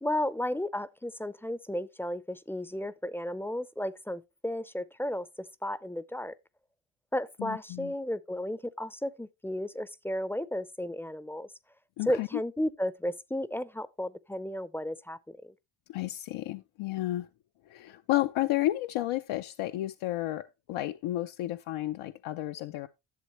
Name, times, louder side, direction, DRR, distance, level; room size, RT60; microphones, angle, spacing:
voice 1, 0.0-6.3 7.1-11.5 12.1-15.5, left 1 dB, 5° left, 0.4 m, -34 dB
voice 2, 7.4-7.9 12.0-12.3 15.9-17.3 17.7-22.9, left 15 dB, 90° left, 0.6 m, -32 dB
11.5 x 7.2 x 3.0 m
cardioid pair, 120°, 47 cm